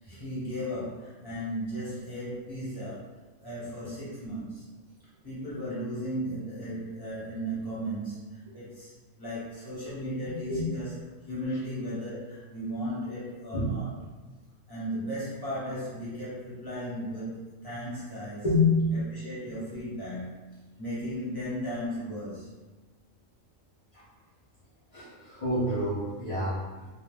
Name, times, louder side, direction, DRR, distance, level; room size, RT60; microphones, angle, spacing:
voice 1, 0.0-3.1 3.4-4.7 5.2-8.9 9.2-10.9 11.2-13.9 14.7-18.4 18.9-20.3 20.8-22.5, equal, 20° left, -10 dB, 1.0 m, -36 dB
voice 2, 18.4-19.0 23.9-24.0 24.9-26.9, left 2 dB, 55° left, -9 dB, 0.4 m, -28 dB
2.3 x 2.2 x 3.2 m, 1.2 s
omnidirectional pair, 1.4 m